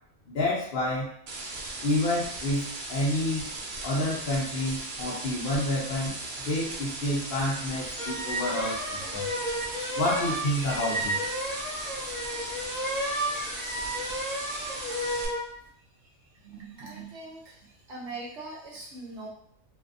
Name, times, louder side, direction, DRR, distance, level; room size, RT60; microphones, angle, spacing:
voice 1, 0.3-1.1 1.8-3.5 3.8-9.3 10.0-11.2, left 1 dB, 55° left, -6 dB, 0.7 m, -29 dB
sound 1, 1.3-15.3, right 2 dB, 80° right, 0.4 m, -38 dB
sound 2, 8.0-15.5, equal, 10° right, 1.0 m, -32 dB
voice 2, 16.4-17.6 17.9-19.3, right 3 dB, 65° right, -3 dB, 0.9 m, -41 dB
2.6 x 2.4 x 2.5 m, 0.66 s
omnidirectional pair, 1.4 m